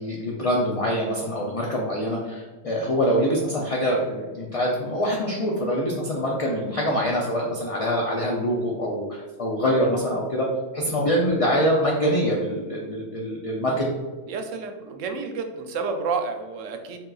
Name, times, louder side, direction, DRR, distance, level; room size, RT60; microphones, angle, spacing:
voice 1, 0.0-9.0 9.4-10.5 10.7-13.9, equal, 45° left, -2 dB, 0.4 m, -24 dB
voice 2, 14.3-17.0, right 4 dB, 90° right, 5 dB, 0.9 m, -30 dB
4.2 x 3.7 x 2.3 m, 1.3 s
omnidirectional pair, 1.3 m